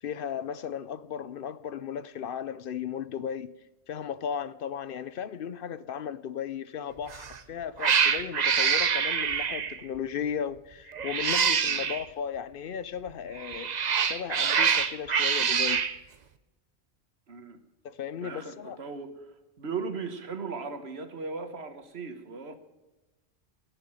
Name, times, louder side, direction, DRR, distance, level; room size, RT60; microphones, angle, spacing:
voice 1, 0.0-3.5 3.9-13.7 14.0-15.8 17.8-18.8, left 8 dB, 60° left, 0.7 m, -35 dB
Cat, 7.1-7.4 7.8-9.8 10.9-12.0 13.4-15.9, right 6 dB, 45° right, 0.7 m, -25 dB
voice 2, 17.3-17.6 18.2-19.3 19.6-22.6, right 4 dB, 70° right, 1.6 m, -37 dB
15.0 x 6.8 x 8.9 m
omnidirectional pair, 1.1 m